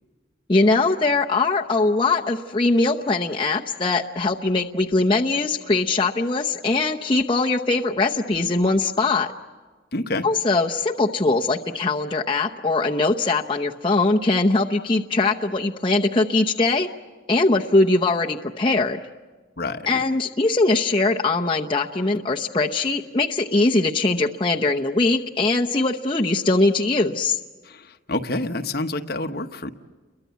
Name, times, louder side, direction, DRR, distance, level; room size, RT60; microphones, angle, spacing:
voice 1, 0.5-9.3 10.2-16.9 17.3-19.0 19.9-27.4, left 3 dB, 25° left, 0 dB, 0.8 m, -21 dB
voice 2, 9.9-10.3 19.6-20.0 27.6-29.7, left 2 dB, 50° left, 6 dB, 1.1 m, -28 dB
29.5 x 23.0 x 8.2 m, 1.4 s
head